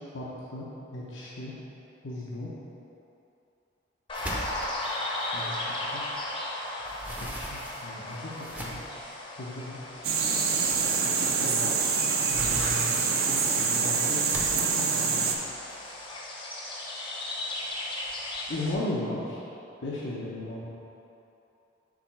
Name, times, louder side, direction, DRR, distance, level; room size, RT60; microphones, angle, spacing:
voice 1, 0.1-1.5 2.0-2.5 5.3-6.0 7.2-8.8 9.4-9.8 11.4-11.9 12.3-13.0 13.3-15.2 18.5-19.4 19.8-20.6, left 1 dB, 80° left, -6 dB, 0.9 m, -36 dB
sound 1, 4.1-18.7, left 1 dB, 25° left, 0.7 m, -37 dB
sound 2, 4.1-6.3 6.7-9.1 9.7-9.8 10.3-10.4 11.8-16.1, right 1 dB, 10° right, 0.6 m, -40 dB
sound 3, 10.0-15.4, right 5 dB, 55° right, 0.6 m, -26 dB
5.0 x 4.0 x 5.8 m, 2.9 s
head